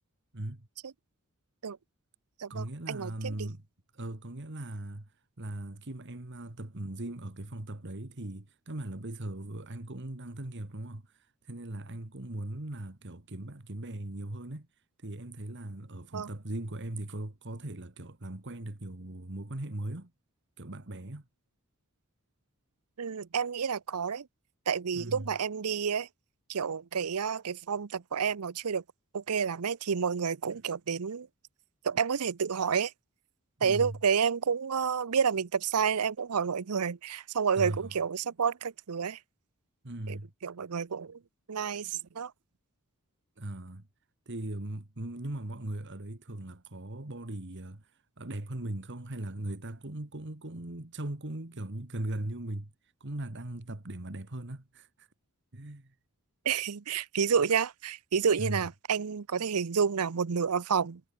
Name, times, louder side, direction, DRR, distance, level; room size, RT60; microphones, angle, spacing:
voice 1, 0.3-0.7 2.5-3.6 3.9-5.1 5.4-11.1 11.4-14.7 15.0-20.1 20.6-21.3 24.9-25.3 33.6-34.0 37.6-37.9 39.8-40.3 43.4-43.9 44.3-47.9 48.2-52.7 53.0-55.1 55.5-55.9 58.4-58.7, right 1 dB, 55° right, 1.9 m, -39 dB
voice 2, 2.4-3.5 16.1-16.3 23.0-24.3 24.7-26.1 26.5-28.8 29.1-31.3 31.8-32.9 33.6-39.2 40.1-41.2 41.5-42.3 56.4-61.0, right 6 dB, 90° right, 0.7 m, -30 dB
head